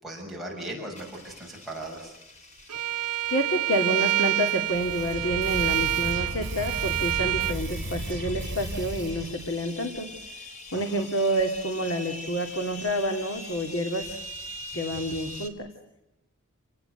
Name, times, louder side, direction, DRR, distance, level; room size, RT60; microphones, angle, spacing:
voice 1, 0.0-2.1 10.7-11.1, right 1 dB, ahead, -3 dB, 6.6 m, -38 dB
sound 1, 1.0-15.5, left 1 dB, 30° left, 3.2 m, -43 dB
Bowed string instrument, 2.7-7.6, right 13 dB, 90° right, 0.9 m, -27 dB
voice 2, 3.3-10.1 10.7-14.2 14.7-15.7, equal, 60° left, 4 dB, 2.7 m, -28 dB
sound 2, 4.7-9.5, right 1 dB, 55° right, 4.7 m, -35 dB
29.5 x 19.0 x 8.1 m, 0.96 s
head